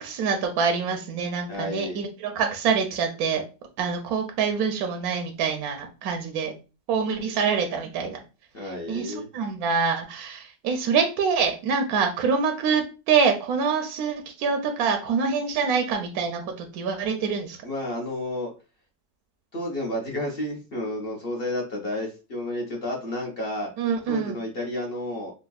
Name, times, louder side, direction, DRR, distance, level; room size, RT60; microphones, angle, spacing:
voice 1, 0.0-3.4 3.8-6.5 6.9-8.2 8.6-17.6 23.8-24.4, right 5 dB, 70° right, 4 dB, 1.0 m, -25 dB
voice 2, 1.5-2.0 8.5-9.3 17.6-18.5 19.5-23.7 24.1-25.3, left 1 dB, 45° left, -1 dB, 0.8 m, -31 dB
5.1 x 2.2 x 2.3 m, 0.32 s
omnidirectional pair, 1.9 m